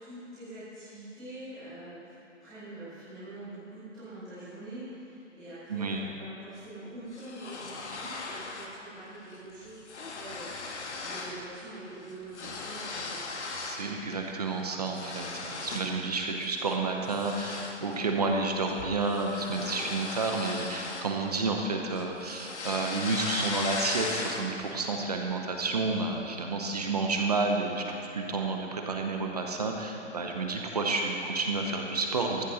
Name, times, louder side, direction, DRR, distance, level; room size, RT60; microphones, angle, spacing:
voice 1, 0.0-2.1 2.4-13.3 29.9-30.2, right 1 dB, ahead, -18 dB, 0.7 m, -45 dB
voice 2, 5.7-6.0 13.7-32.4, right 3 dB, 30° right, 2 dB, 0.8 m, -30 dB
sound 1, 7.1-8.8 9.1-9.4 9.6-11.4 11.7-13.9 14.3-16.0 16.4-16.6 17.1-21.6 21.9-24.7, left 3 dB, 65° left, 1.6 m, -38 dB
14.0 x 6.5 x 6.3 m, 2.9 s
hypercardioid pair, 170°, 37 cm